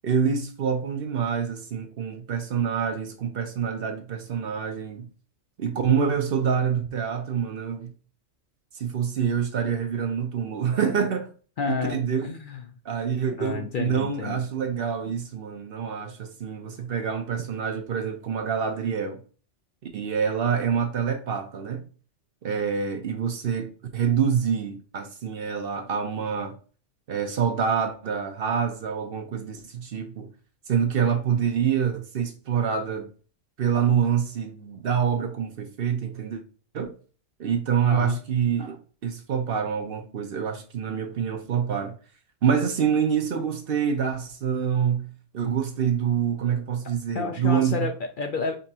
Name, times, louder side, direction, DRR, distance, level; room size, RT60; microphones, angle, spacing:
voice 1, 0.0-5.1 5.6-7.9 8.7-11.3 11.7-12.2 12.8-19.2 19.9-21.9 22.4-26.6 27.1-30.3 30.7-33.1 33.6-36.4 36.7-36.9 37.4-42.0 42.4-47.9, right 7 dB, 55° right, 0.8 m, -26 dB
voice 2, 11.6-12.6 13.4-14.4 37.8-38.2 47.1-48.6, left 5 dB, 55° left, 0.6 m, -30 dB
5.3 x 3.4 x 2.8 m
omnidirectional pair, 1.2 m